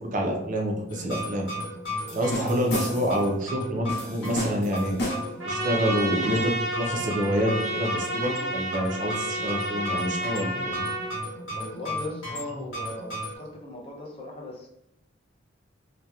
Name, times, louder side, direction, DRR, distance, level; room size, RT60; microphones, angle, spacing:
voice 1, 0.0-1.5 2.1-4.9 5.4-6.5 6.8-10.8, equal, 40° right, 1 dB, 0.4 m, -27 dB
sound 1, 0.9-13.4, left 1 dB, 80° left, 1.1 m, -35 dB
sound 2, 2.1-3.2 3.9-5.4, left 1 dB, 60° left, 0.9 m, -32 dB
Trumpet, 5.4-11.2, right 1 dB, 90° right, 0.7 m, -31 dB
voice 2, 11.5-14.7, left 1 dB, 30° left, -1 dB, 0.5 m, -38 dB
2.7 x 2.1 x 2.2 m, 0.81 s
head